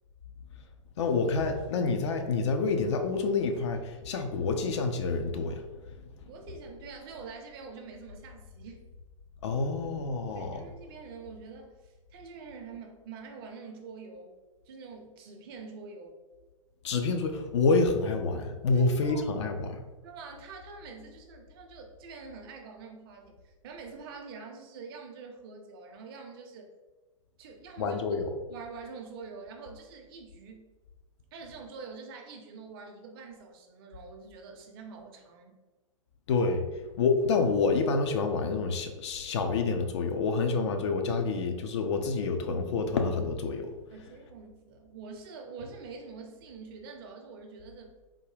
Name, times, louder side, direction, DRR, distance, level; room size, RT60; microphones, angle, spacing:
voice 1, 1.0-5.6 5.9-6.3 9.4-10.6 16.8-19.8 27.8-28.3 36.3-43.7, left 4 dB, 55° left, 6 dB, 0.5 m, -28 dB
voice 2, 6.2-8.8 10.3-14.4 14.7-16.2 18.7-19.2 20.0-26.7 27.4-30.7 31.3-35.6 43.9-47.9, right 4 dB, 45° right, 3 dB, 0.6 m, -46 dB
3.6 x 2.2 x 3.2 m, 1.2 s
figure-of-eight pair, 110°, 17 cm